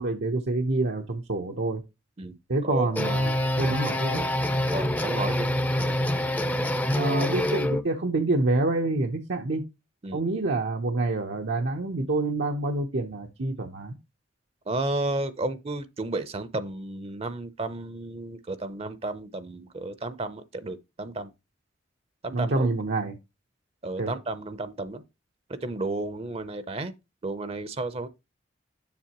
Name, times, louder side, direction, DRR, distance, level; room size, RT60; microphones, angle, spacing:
voice 1, 0.0-1.8 2.5-3.3 3.6-4.3 6.9-9.6 10.1-13.9 22.3-23.1 24.0-24.1, right 2 dB, 80° right, 0.9 m, -27 dB
sound 1, 2.7-7.8, left 1 dB, 10° left, 0.5 m, -26 dB
voice 2, 4.7-5.5 10.0-10.2 14.7-21.3 22.2-22.7 23.8-25.0 25.5-26.9 27.2-28.1, right 2 dB, 35° right, 0.6 m, -32 dB
7.4 x 6.5 x 2.9 m
head